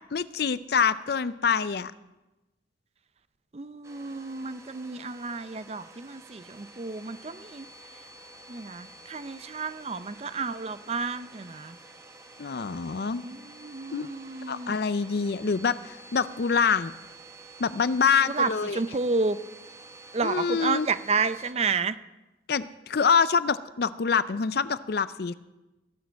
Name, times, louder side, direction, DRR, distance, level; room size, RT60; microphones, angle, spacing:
voice 1, 0.1-1.9 12.4-13.2 13.9-14.1 14.5-16.9 17.6-18.8 20.2-20.9 22.5-25.3, left 5 dB, 55° left, 15 dB, 0.5 m, -25 dB
voice 2, 3.5-7.7 8.5-11.8 13.2-14.7 18.3-19.4 20.1-22.0, right 4 dB, 35° right, 14 dB, 0.5 m, -31 dB
Domestic sounds home sounds, 3.8-21.5, right 2 dB, 15° right, 0.9 m, -49 dB
16.5 x 6.5 x 8.2 m, 1.0 s
head